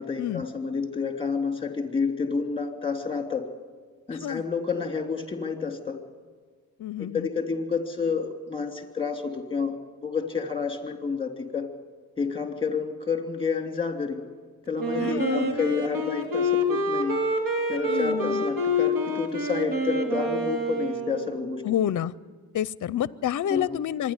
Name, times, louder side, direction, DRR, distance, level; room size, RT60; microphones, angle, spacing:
voice 1, 0.0-3.5 4.1-6.0 7.0-9.8 10.0-11.7 12.2-14.2 14.7-17.2 17.7-21.6 23.5-23.7, left 5 dB, 15° left, 4 dB, 3.2 m, -29 dB
voice 2, 4.1-4.4 6.8-7.3 15.0-15.6 17.9-18.5 21.6-22.1 22.5-24.1, left 10 dB, 55° left, 19 dB, 0.6 m, -28 dB
Wind instrument woodwind instrument, 14.8-21.5, left 1 dB, 70° right, 2.9 m, -27 dB
25.5 x 10.5 x 9.8 m, 1.5 s
cardioid pair, 75°, 36 cm